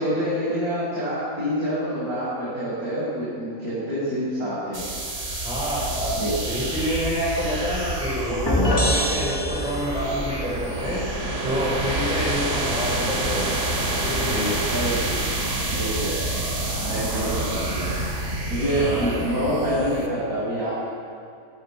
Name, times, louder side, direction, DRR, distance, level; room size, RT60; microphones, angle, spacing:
voice 1, 0.0-4.8 6.2-6.3 14.7-15.2 15.6-16.1 16.8-18.0 18.5-20.7, equal, 80° right, -9 dB, 7.6 m, -26 dB
sound 1, 4.7-20.1, right 1 dB, 55° right, 3.3 m, -28 dB
voice 2, 5.4-11.0 11.4-13.5 14.0-14.6 18.8-19.1, equal, 5° right, -7 dB, 6.3 m, -28 dB
sound 2, 8.5-10.2, left 1 dB, 15° left, 3.9 m, -24 dB
25.5 x 15.5 x 7.6 m, 2.5 s
omnidirectional pair, 1.5 m